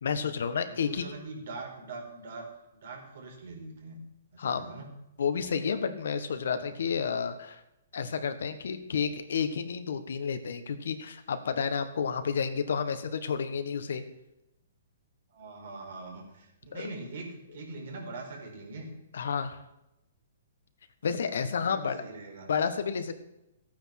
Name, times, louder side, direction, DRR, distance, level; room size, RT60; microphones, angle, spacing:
voice 1, 0.0-1.0 4.4-4.7 5.2-7.6 7.9-14.0 16.7-16.9 19.1-19.6 21.0-22.0 22.5-23.2, left 6 dB, 75° left, 9 dB, 1.5 m, -31 dB
voice 2, 0.6-2.5 2.8-4.0 4.3-4.9 6.6-6.7 15.3-18.9 21.6-22.5, right 3 dB, 65° right, 1 dB, 4.7 m, -42 dB
14.0 x 9.2 x 6.0 m, 0.87 s
hypercardioid pair, 145°, 0 cm